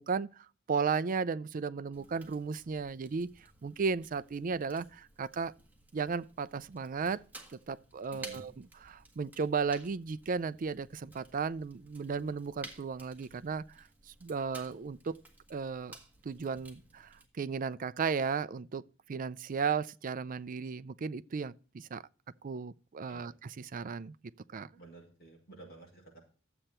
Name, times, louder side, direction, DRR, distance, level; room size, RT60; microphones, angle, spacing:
voice 1, 0.0-5.5 5.9-7.2 7.7-15.1 15.5-15.9 16.2-18.8 19.1-22.0 22.4-24.1 24.5-24.7, right 5 dB, 40° right, 0.4 m, -35 dB
Fire, 1.9-17.3, right 2 dB, 10° right, 1.7 m, -55 dB
voice 2, 8.1-8.5 23.1-23.3 24.7-26.2, right 3 dB, 50° left, 5.9 m, -52 dB
12.0 x 7.9 x 4.3 m
head